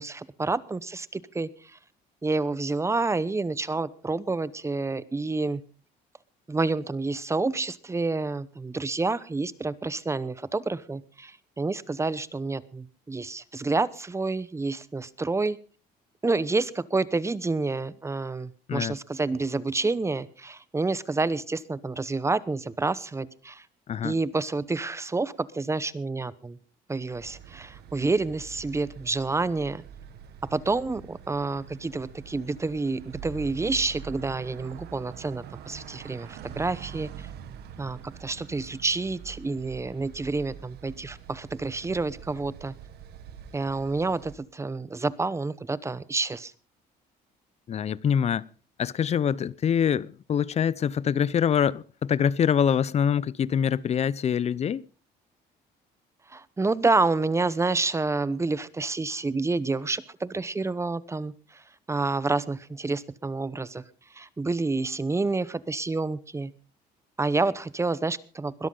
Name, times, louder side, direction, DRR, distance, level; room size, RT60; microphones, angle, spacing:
voice 1, 0.0-1.8 2.2-5.6 6.5-15.6 16.2-23.7 24.0-26.6 26.9-29.8 30.5-37.3 37.8-42.7 43.5-46.5 56.3-63.8 64.1-66.5 67.2-68.7, right 3 dB, 15° right, 0.8 m, -29 dB
sound 1, 27.1-44.4, right 8 dB, 75° right, 1.7 m, -45 dB
voice 2, 47.7-48.5 48.8-54.8, left 8 dB, 40° left, 0.6 m, -25 dB
21.0 x 13.0 x 3.9 m
cardioid pair, 110°, 17 cm